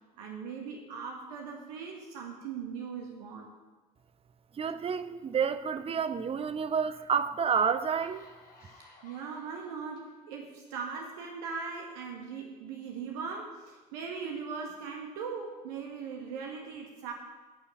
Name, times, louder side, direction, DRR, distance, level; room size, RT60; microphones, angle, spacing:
voice 1, 0.2-3.5 8.6-17.1, right 5 dB, 65° right, 1 dB, 1.7 m, -40 dB
voice 2, 4.6-8.3, right 6 dB, 25° right, 12 dB, 0.8 m, -29 dB
sound 1, 7.6-10.0 10.7-10.9, left 3 dB, 45° left, 3.2 m, -57 dB
10.5 x 7.1 x 9.0 m, 1.3 s
figure-of-eight pair, 60°, 21 cm